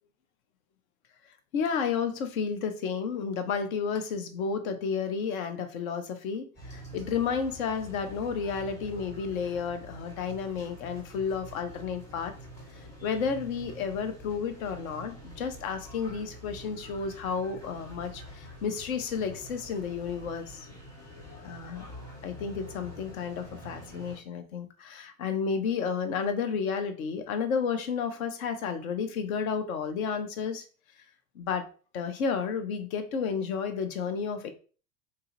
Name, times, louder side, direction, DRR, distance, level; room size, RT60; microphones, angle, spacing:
voice 1, 1.5-12.3 13.0-20.7 21.3-21.9 22.2-30.7 31.4-31.7 31.9-34.5, left 6 dB, 55° left, 8 dB, 0.7 m, -32 dB
sound 1, 6.5-24.2, equal, 5° left, 1.0 m, -46 dB
2.8 x 2.3 x 3.0 m, 0.38 s
figure-of-eight pair, 80°, 50 cm